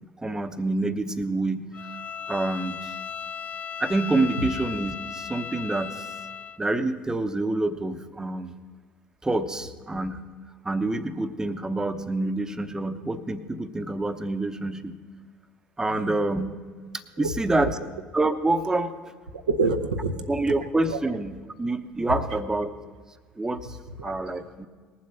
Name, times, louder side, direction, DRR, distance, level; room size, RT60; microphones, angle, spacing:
voice 1, 0.2-1.7 2.3-2.8 3.8-6.1 6.6-8.5 9.2-10.2 10.6-15.0 15.8-16.5 17.2-17.7 18.1-18.9 20.3-22.7 23.4-23.7 24.0-24.7, right 2 dB, 15° right, 10 dB, 0.9 m, -27 dB
Bowed string instrument, 1.7-6.6, left 7 dB, 35° left, 0.3 m, -36 dB
voice 2, 15.8-16.3 17.2-17.3 17.6-17.7 19.5-20.6 20.9-21.0 22.0-22.4 23.7-24.1, right 3 dB, 80° right, 5 dB, 0.8 m, -29 dB
19.5 x 7.6 x 5.8 m, 1.5 s
figure-of-eight pair, 60°, 4 cm